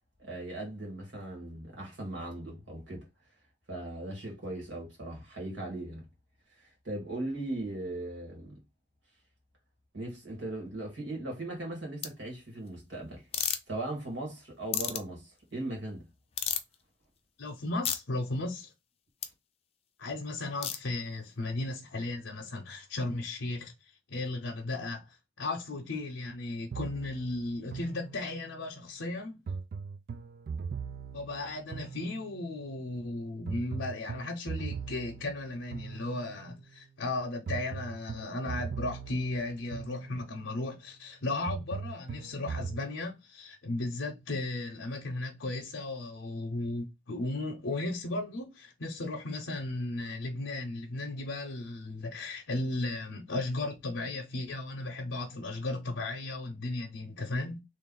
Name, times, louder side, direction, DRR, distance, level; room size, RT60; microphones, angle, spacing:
voice 1, 0.2-3.1 3.7-6.1 6.6-8.6 9.9-13.3 13.7-16.0, right 1 dB, 80° right, 1.8 m, -38 dB
sound 1, 12.0-12.1 13.3-13.6 14.7-15.0 16.4-16.7 17.8-18.0 19.2-19.3 20.6-20.8, left 9 dB, 30° left, 0.4 m, -30 dB
voice 2, 17.4-18.7 20.0-23.7 24.1-29.4 31.1-57.6, left 2 dB, 85° left, 0.7 m, -35 dB
sound 2, 26.7-28.6 29.5-32.5 33.5-36.5 37.5-40.5 41.5-42.8, right 5 dB, 50° right, 0.3 m, -40 dB
3.3 x 2.5 x 3.8 m
head